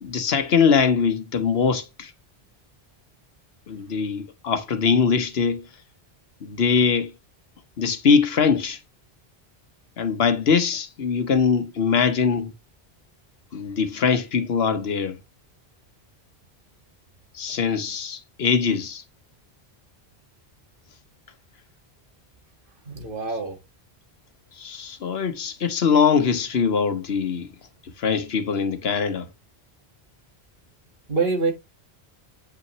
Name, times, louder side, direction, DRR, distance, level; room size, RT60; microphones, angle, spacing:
voice 1, 0.0-2.1 3.7-5.7 6.4-7.1 7.8-8.8 10.0-12.5 13.5-15.2 17.3-19.0 24.6-27.5 28.0-29.3, left 6 dB, 70° left, 1.2 m, -22 dB
voice 2, 22.9-23.6 31.1-31.5, right 4 dB, 55° right, 1.8 m, -25 dB
8.2 x 5.5 x 3.0 m
omnidirectional pair, 1.1 m